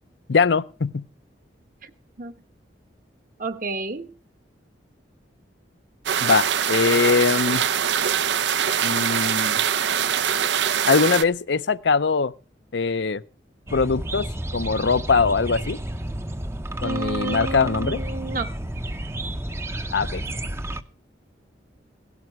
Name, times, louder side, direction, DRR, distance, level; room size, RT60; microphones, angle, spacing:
voice 1, 0.3-1.0 6.2-7.6 8.8-9.6 10.9-12.3 12.7-13.2 13.7-15.8 16.8-18.0 19.9-20.2, left 5 dB, 70° left, 0.6 m, -22 dB
voice 2, 3.4-4.1 16.8-18.6, right 3 dB, 45° right, 1.1 m, -31 dB
sound 1, 6.1-11.2, right 8 dB, 75° right, 0.6 m, -23 dB
sound 2, 13.7-20.8, right 1 dB, 15° right, 0.7 m, -31 dB
17.0 x 12.0 x 4.7 m
head